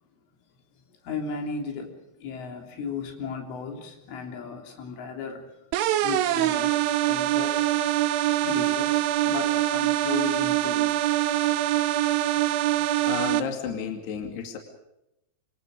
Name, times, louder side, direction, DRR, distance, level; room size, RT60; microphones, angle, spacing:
voice 1, 1.0-5.5 6.0-7.7 8.4-11.0, left 5 dB, 80° left, 3 dB, 5.9 m, -35 dB
sound 1, 5.7-13.4, right 14 dB, 80° right, 3.4 m, -24 dB
voice 2, 13.0-14.6, left 6 dB, 60° left, 3 dB, 4.4 m, -32 dB
27.0 x 26.5 x 5.1 m, 0.87 s
omnidirectional pair, 5.5 m